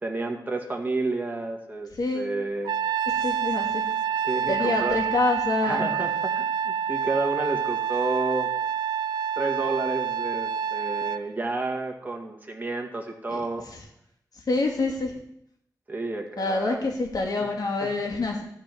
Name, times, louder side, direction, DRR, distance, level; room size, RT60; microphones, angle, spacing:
voice 1, 0.0-2.7 4.2-5.0 5.6-8.5 9.4-13.7 15.9-16.8 17.8-17.9, right 2 dB, 25° right, 2 dB, 2.1 m, -30 dB
voice 2, 1.9-2.3 3.1-3.8 4.5-5.9 13.3-13.8 14.3-15.1 16.4-18.4, left 3 dB, 65° left, 1 dB, 2.4 m, -27 dB
Trumpet, 2.6-11.2, right 8 dB, 85° right, 0.3 m, -27 dB
13.5 x 4.5 x 8.3 m, 0.73 s
cardioid pair, 75°, 7 cm